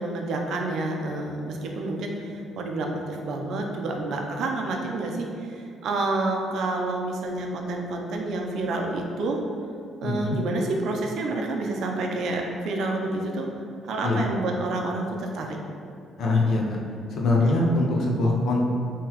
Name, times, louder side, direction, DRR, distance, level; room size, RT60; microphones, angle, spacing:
voice 1, 0.0-9.4 10.0-13.5 13.8-15.6, right 2 dB, 60° right, 1 dB, 0.4 m, -29 dB
voice 2, 10.0-10.4 14.0-14.2 16.2-16.8 17.1-18.7, left 2 dB, 55° left, -1 dB, 0.5 m, -23 dB
3.8 x 2.8 x 2.9 m, 2.5 s
cardioid pair, 155°, 0 cm